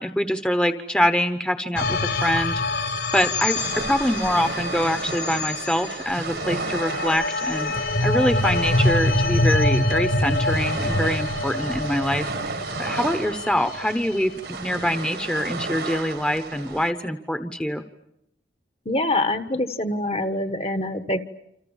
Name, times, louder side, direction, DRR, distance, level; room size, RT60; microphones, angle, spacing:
voice 1, 0.0-2.6 3.1-7.7 8.0-17.8, equal, 5° left, 9 dB, 1.0 m, -24 dB
sound 1, 1.8-14.2, left 2 dB, 75° left, 4.3 m, -25 dB
sound 2, 3.5-16.9, right 3 dB, 70° right, 1.7 m, -33 dB
voice 2, 18.9-21.2, left 1 dB, 35° left, 10 dB, 1.2 m, -25 dB
29.0 x 27.0 x 7.3 m, 0.81 s
head